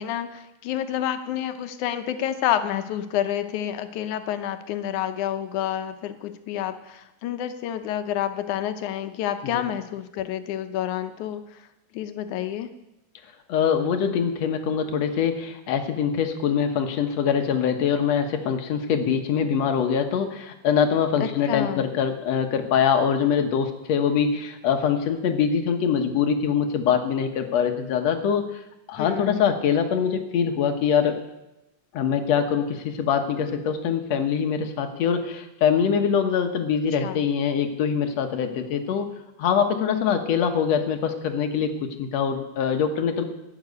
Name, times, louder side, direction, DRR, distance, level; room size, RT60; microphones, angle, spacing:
voice 1, 0.0-11.7 11.9-12.7 21.2-21.9 29.0-29.4 37.0-37.2, left 11 dB, 80° left, 9 dB, 2.2 m, -29 dB
voice 2, 13.5-28.5 28.9-31.2 31.9-39.1 39.4-43.2, left 7 dB, 65° left, 6 dB, 2.2 m, -23 dB
11.5 x 7.4 x 9.5 m, 0.94 s
omnidirectional pair, 3.4 m